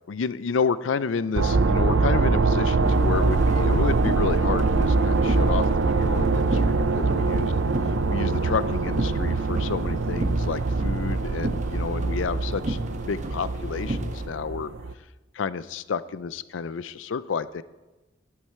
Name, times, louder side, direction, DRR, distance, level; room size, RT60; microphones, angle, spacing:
voice 1, 0.1-5.7 6.0-7.5 8.1-12.8 13.1-14.7 15.3-17.6, left 5 dB, 85° left, 16 dB, 0.5 m, -30 dB
sound 1, 1.3-14.9, right 3 dB, 90° right, 0.6 m, -23 dB
sound 2, 2.8-14.2, right 1 dB, 40° right, 1.0 m, -34 dB
12.0 x 11.0 x 4.5 m, 1.1 s
head